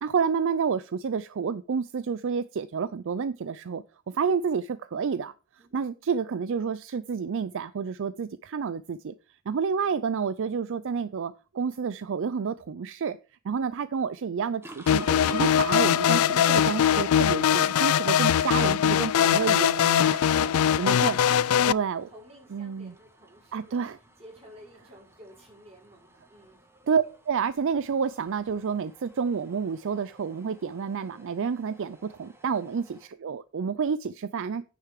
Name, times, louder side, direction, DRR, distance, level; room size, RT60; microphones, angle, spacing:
voice 1, 0.0-5.3 5.7-9.1 9.5-13.2 13.4-20.5 20.8-21.2 21.7-22.1 22.5-22.9 23.5-24.0 26.9-34.6, right 6 dB, 60° right, 15 dB, 0.4 m, -29 dB
voice 2, 5.6-6.1 22.0-23.8 24.2-26.6, equal, 30° right, -3 dB, 5.6 m, -53 dB
sound 1, 14.6-33.1, right 1 dB, 10° right, 1.4 m, -52 dB
sound 2, 14.9-21.7, left 9 dB, 80° left, 0.4 m, -22 dB
9.4 x 6.6 x 4.8 m, 0.33 s
head